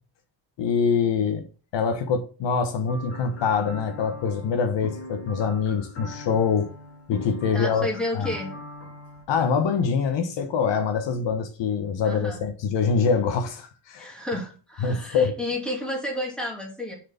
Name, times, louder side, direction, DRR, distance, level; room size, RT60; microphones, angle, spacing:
voice 1, 0.6-1.5 1.7-6.7 7.1-7.9 8.1-8.3 9.3-14.1 14.8-15.3, left 5 dB, 65° left, 1.2 m, -24 dB
sound 1, 2.9-9.2, left 2 dB, 30° left, 1.9 m, -40 dB
voice 2, 7.5-8.5 12.0-12.5 14.0-16.9, left 1 dB, ahead, 2.6 m, -31 dB
6.6 x 4.9 x 5.8 m
cardioid pair, 145°, 46 cm